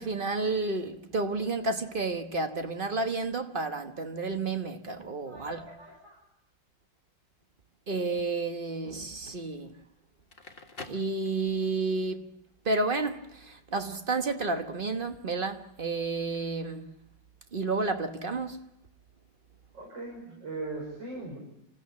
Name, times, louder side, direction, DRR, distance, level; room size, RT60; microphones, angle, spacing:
voice 1, 0.0-5.6 7.9-9.7 10.8-12.3 12.6-16.9 17.5-18.7, right 3 dB, 35° right, 1.2 m, -31 dB
voice 2, 5.3-6.2 19.7-21.4, right 2 dB, 85° right, 6.2 m, -40 dB
Crackle, 10.1-11.8, left 3 dB, 30° left, 1.7 m, -46 dB
27.5 x 14.5 x 8.5 m
omnidirectional pair, 2.0 m